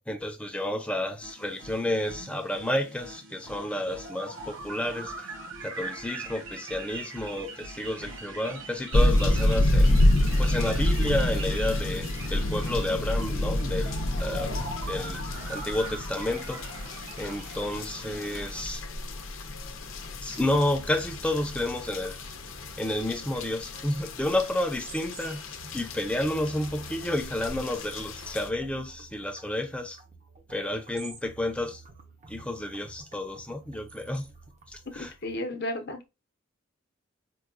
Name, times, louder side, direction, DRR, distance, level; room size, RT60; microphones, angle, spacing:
voice 1, 0.0-5.3 5.6-10.0 10.4-14.5 14.9-15.2 15.5-16.6 17.2-18.8 20.2-22.2 22.8-30.0 30.5-31.8 32.3-34.3 34.7-35.1, left 1 dB, 5° left, 0.5 m, -31 dB
sound 1, 1.2-18.6, right 2 dB, 75° right, 0.9 m, -41 dB
sound 2, 8.9-28.5, left 1 dB, 90° left, 0.7 m, -28 dB
sound 3, 20.4-35.4, right 4 dB, 35° right, 0.7 m, -50 dB
voice 2, 35.2-36.1, left 1 dB, 55° left, 0.8 m, -32 dB
4.6 x 2.2 x 2.5 m
head